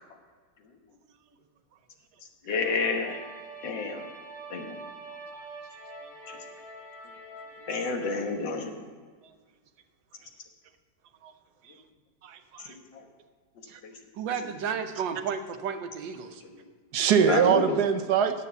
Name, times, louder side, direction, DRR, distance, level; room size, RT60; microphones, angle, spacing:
voice 1, 2.4-3.2 3.6-4.1 4.5-4.8 6.3-6.4 7.7-8.7 12.7-13.1 13.8-13.9 14.4-14.6 16.4-16.7 17.2-17.8, left 4 dB, 90° left, 3 dB, 2.0 m, -30 dB
sound 1, 2.6-8.3, right 2 dB, 50° left, 3.3 m, -45 dB
voice 2, 12.2-12.7 13.7-13.8 16.9-18.5, right 8 dB, 70° right, 8 dB, 1.2 m, -23 dB
voice 3, 14.1-16.4, right 7 dB, 85° right, 7 dB, 1.6 m, -32 dB
9.4 x 7.9 x 6.8 m, 1.5 s
omnidirectional pair, 1.9 m